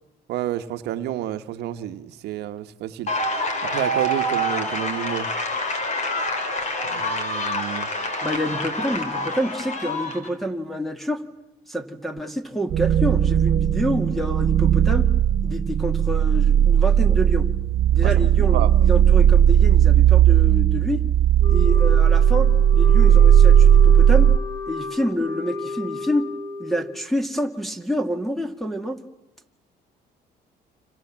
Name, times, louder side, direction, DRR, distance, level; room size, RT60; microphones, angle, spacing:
voice 1, 0.3-3.1 3.6-5.3 6.8-7.9 18.0-18.7, right 12 dB, 80° right, 1.2 m, -30 dB
sound 1, 3.1-10.3, left 1 dB, 45° left, 4.4 m, -27 dB
voice 2, 8.2-11.2 11.7-15.1 15.4-17.5 17.9-21.0 21.5-24.3 24.7-26.3 26.6-29.0, equal, ahead, 2.0 m, -27 dB
sound 2, 12.7-24.4, right 9 dB, 60° right, 1.5 m, -16 dB
Wind instrument woodwind instrument, 21.4-27.0, left 3 dB, 20° left, 1.9 m, -33 dB
30.0 x 26.5 x 7.4 m
cardioid pair, 110°, 17 cm